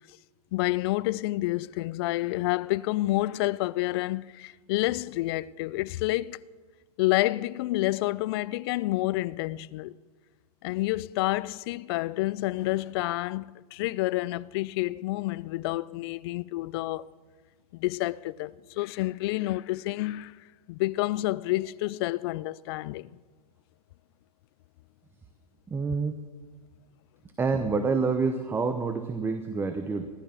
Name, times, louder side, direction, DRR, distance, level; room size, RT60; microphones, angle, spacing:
voice 1, 0.5-6.4 7.0-9.9 10.6-17.1 17.7-20.4 20.7-23.2, left 18 dB, 40° left, 0.4 m, -29 dB
voice 2, 25.7-26.1 27.4-30.1, right 4 dB, 10° right, 0.7 m, -27 dB
14.5 x 12.0 x 7.3 m
hypercardioid pair, 125°, 20 cm